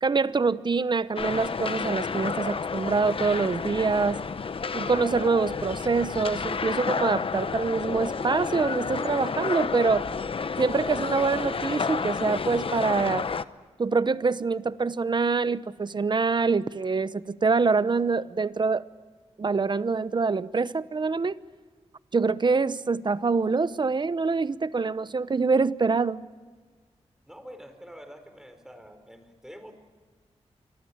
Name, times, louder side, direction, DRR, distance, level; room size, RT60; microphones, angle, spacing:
voice 1, 0.0-4.2 4.7-10.1 10.6-13.3 13.8-18.9 19.4-21.4 22.1-26.2, right 4 dB, 40° right, 0.9 m, -25 dB
sound 1, 1.2-13.4, left 5 dB, 50° left, 0.9 m, -30 dB
voice 2, 27.3-29.7, equal, 5° right, 4.8 m, -46 dB
26.5 x 24.5 x 8.8 m
wide cardioid pair, 100°, 12 cm